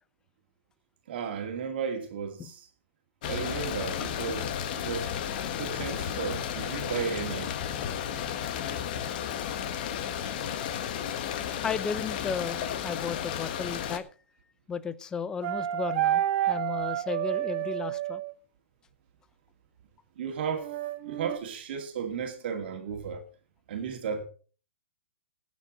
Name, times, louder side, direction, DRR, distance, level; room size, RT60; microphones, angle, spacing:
voice 1, 1.1-2.7 3.2-4.4 4.8-5.1 5.6-7.5 20.2-20.7 21.0-23.2 23.7-24.3, right 6 dB, 50° right, 2.4 m, -34 dB
sound 1, 3.2-14.0, left 9 dB, 45° left, 1.5 m, -33 dB
voice 2, 11.6-14.1 14.7-18.2, left 6 dB, 10° left, 0.6 m, -34 dB
El Condor Pasa, 15.4-18.3 20.6-21.4, right 12 dB, 35° right, 1.3 m, -29 dB
17.5 x 9.3 x 3.9 m
hypercardioid pair, 160°, 7 cm